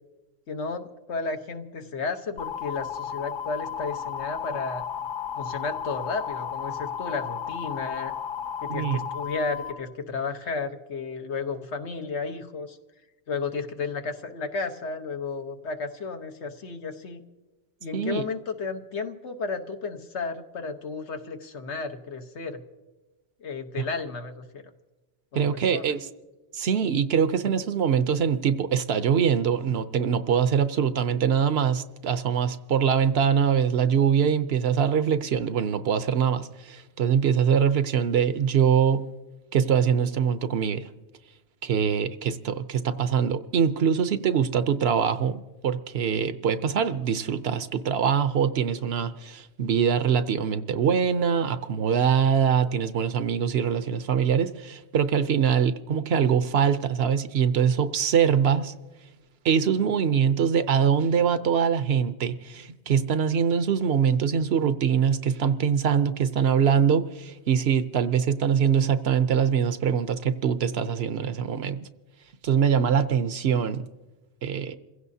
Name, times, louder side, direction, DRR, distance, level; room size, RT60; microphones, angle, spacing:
voice 1, 0.5-4.8 5.4-8.1 8.6-12.8 13.3-17.2 17.8-22.6 23.4-24.6 25.3-25.9, left 4 dB, 80° left, 6 dB, 1.4 m, -33 dB
sound 1, 2.4-9.7, left 8 dB, 50° left, 0.9 m, -34 dB
voice 2, 8.7-9.0 17.9-18.2 23.8-23.9 25.3-26.1 26.5-39.0 39.5-40.9 41.6-58.7 59.4-71.8 72.4-73.9 74.4-74.7, right 7 dB, 70° right, 12 dB, 0.9 m, -23 dB
27.5 x 16.0 x 2.7 m, 1.1 s
omnidirectional pair, 1.1 m